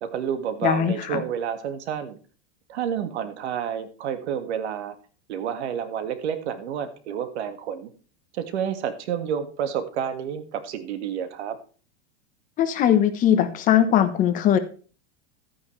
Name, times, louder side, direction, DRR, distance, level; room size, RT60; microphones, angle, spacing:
voice 1, 0.0-2.2 2.7-5.0 5.3-7.9 8.3-11.6, right 8 dB, 85° right, 9 dB, 1.8 m, -29 dB
voice 2, 0.6-1.2 12.6-14.6, left 10 dB, 25° left, 9 dB, 1.0 m, -20 dB
13.0 x 9.5 x 3.2 m, 0.38 s
supercardioid pair, 165°, 32 cm